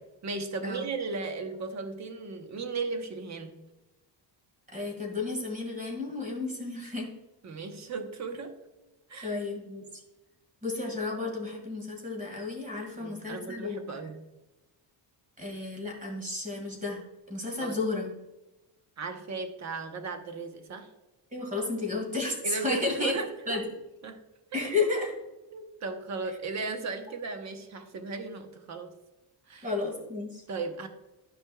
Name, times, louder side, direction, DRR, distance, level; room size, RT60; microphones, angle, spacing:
voice 1, 0.2-3.5 7.4-8.6 9.1-9.4 13.0-14.2 17.6-17.8 19.0-20.9 22.4-23.6 24.0-24.2 25.5-28.9 29.5-29.7 30.5-30.9, right 4 dB, 40° right, 7 dB, 0.9 m, -36 dB
voice 2, 4.7-7.1 9.2-9.8 10.6-13.8 15.4-17.0 17.3-18.1 21.3-23.2 23.5-23.6 24.5-25.1 29.6-30.4, left 3 dB, 20° right, 2 dB, 2.0 m, -32 dB
12.5 x 5.3 x 2.3 m, 1.0 s
cardioid pair, 155°, 44 cm